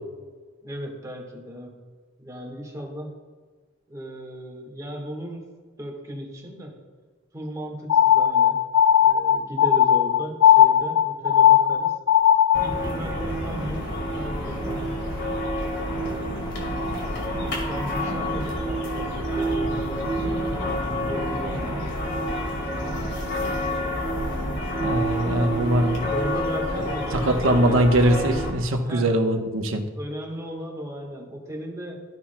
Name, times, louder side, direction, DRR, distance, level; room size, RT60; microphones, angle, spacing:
voice 1, 0.6-1.7 2.2-3.1 3.9-5.5 5.8-6.7 7.3-8.6 9.0-12.0 12.6-14.9 15.9-20.7 21.1-22.2 26.1-27.9 28.9-29.2 29.9-32.0, equal, 15° right, -1 dB, 1.4 m, -36 dB
sound 1, 7.9-12.8, left 10 dB, 80° left, 0.3 m, -17 dB
sound 2, 12.5-28.5, equal, 55° left, 2.0 m, -28 dB
voice 2, 24.8-26.1 27.2-29.8, right 1 dB, 70° right, 4 dB, 0.9 m, -21 dB
13.5 x 5.8 x 2.2 m, 1.5 s
head